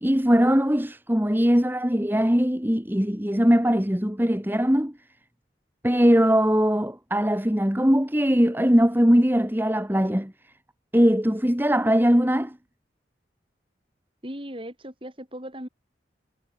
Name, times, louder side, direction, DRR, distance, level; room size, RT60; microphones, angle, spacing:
voice 1, 0.0-4.9 5.8-10.3 10.9-12.6, equal, 10° right, 1.7 m, -21 dB
voice 2, 14.2-15.7, equal, 30° right, 7.0 m, -37 dB
head